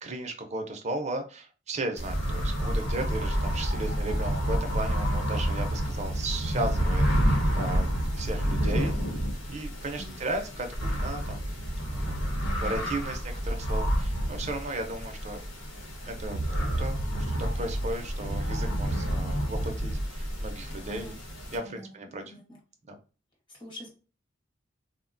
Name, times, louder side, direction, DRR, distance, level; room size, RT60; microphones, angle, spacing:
voice 1, 0.0-9.2 9.5-11.5 11.9-15.4 16.1-21.1 21.5-22.3 22.9-23.0, right 2 dB, 35° right, 5 dB, 0.5 m, -36 dB
sound 1, 2.0-21.6, equal, 80° left, 1.1 m, -29 dB
voice 2, 12.4-13.1 20.9-21.2 21.6-21.9 22.2-22.6 23.6-23.9, equal, 25° left, -1 dB, 1.2 m, -44 dB
3.7 x 2.1 x 2.5 m, 0.35 s
head